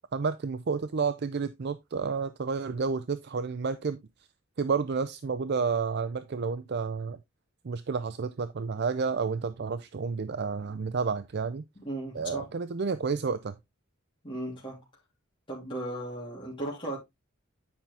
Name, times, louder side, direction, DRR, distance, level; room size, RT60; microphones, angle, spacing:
voice 1, 0.1-4.0 4.6-7.2 7.6-11.6 12.1-13.5, right 5 dB, 55° right, 0.5 m, -30 dB
voice 2, 11.7-12.5 14.2-14.8 15.5-17.0, right 1 dB, 25° left, 3.1 m, -36 dB
9.7 x 5.7 x 3.3 m
head